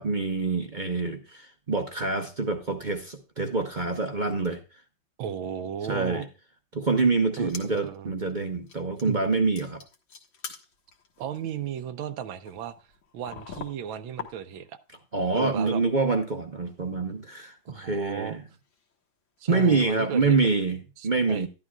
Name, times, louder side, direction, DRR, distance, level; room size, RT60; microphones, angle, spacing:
voice 1, 0.0-4.6 5.9-6.2 6.7-9.8 15.1-18.4 19.5-20.8 21.0-21.5, right 3 dB, 40° right, 0.7 m, -26 dB
voice 2, 5.2-6.3 7.4-8.1 9.0-9.2 11.2-12.7 13.1-14.8 15.3-15.8 17.6-18.4 19.4-20.4 21.0-21.5, right 9 dB, 80° right, 1.5 m, -35 dB
sound 1, 7.3-8.0 8.3-8.4 8.7-9.3 9.6-14.8 15.1-15.9 16.1-16.2 16.8-19.0 19.4-19.5, left 6 dB, 70° left, 2.2 m, -45 dB
12.0 x 11.5 x 2.3 m
omnidirectional pair, 2.2 m